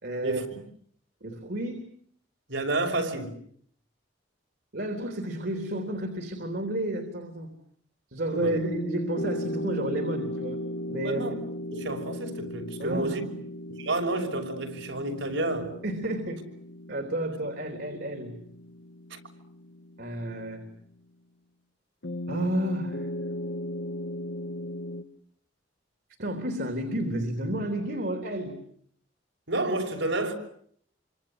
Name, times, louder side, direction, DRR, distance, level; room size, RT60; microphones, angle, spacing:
voice 1, 0.0-0.4 1.2-1.9 4.7-7.5 8.1-10.6 10.9-11.3 12.8-13.2 15.8-16.4 16.9-18.4 20.0-20.6 22.3-23.1 26.2-28.6, right 1 dB, 60° right, 3.6 m, -31 dB
voice 2, 2.5-3.3 8.3-8.5 11.0-11.3 11.7-13.2 13.8-15.7 19.1-19.2 29.5-30.3, right 2 dB, 80° right, 6.0 m, -30 dB
sound 1, 8.3-20.8 22.0-25.0, left 1 dB, 75° left, 1.9 m, -37 dB
28.5 x 25.5 x 8.1 m
head